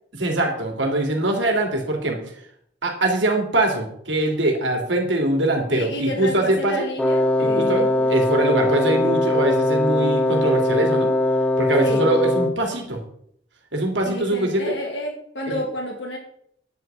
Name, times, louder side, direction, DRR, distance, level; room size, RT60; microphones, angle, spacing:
voice 1, 0.1-2.2 2.8-6.9 7.4-11.1 11.6-13.0 13.7-14.7 15.5-15.6, right 2 dB, 80° right, 2 dB, 2.9 m, -22 dB
voice 2, 5.7-8.1 11.8-12.1 14.0-16.2, left 1 dB, 70° left, -1 dB, 2.4 m, -30 dB
Wind instrument woodwind instrument, 7.0-12.7, left 1 dB, 5° left, 0.7 m, -21 dB
10.5 x 5.9 x 8.8 m, 0.68 s
head